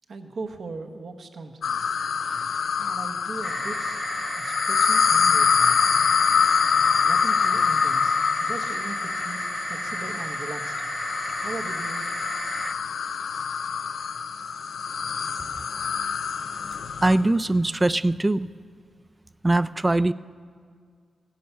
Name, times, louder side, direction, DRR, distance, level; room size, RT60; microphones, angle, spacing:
voice 1, 0.1-1.8 2.8-4.0 4.3-5.8 7.0-9.4 9.7-10.9 11.4-12.1, right 3 dB, 70° right, 6 dB, 1.1 m, -38 dB
sound 1, 1.6-17.2, left 6 dB, 80° left, 0.4 m, -25 dB
sound 2, 3.4-12.7, right 2 dB, 40° right, 0.8 m, -34 dB
voice 2, 17.0-18.5 19.4-20.1, right 2 dB, 25° right, 16 dB, 0.3 m, -21 dB
16.0 x 10.5 x 5.6 m, 2.1 s
cardioid pair, 55°, 0 cm